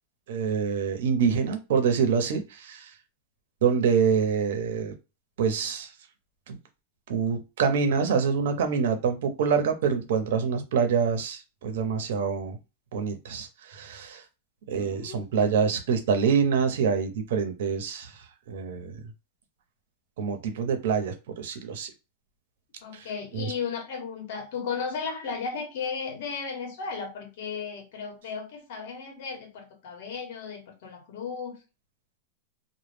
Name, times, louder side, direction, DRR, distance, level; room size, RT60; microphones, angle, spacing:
voice 1, 0.3-2.8 3.6-4.9 5.4-5.9 6.5-6.6 7.1-12.6 12.9-14.2 14.7-18.1 18.5-18.9 20.2-21.9 23.3-23.5, right 6 dB, 75° right, 0.7 m, -26 dB
voice 2, 14.7-15.8 22.8-31.6, left 5 dB, 65° left, 0.9 m, -35 dB
2.1 x 2.0 x 3.2 m
supercardioid pair, 145°, 0 cm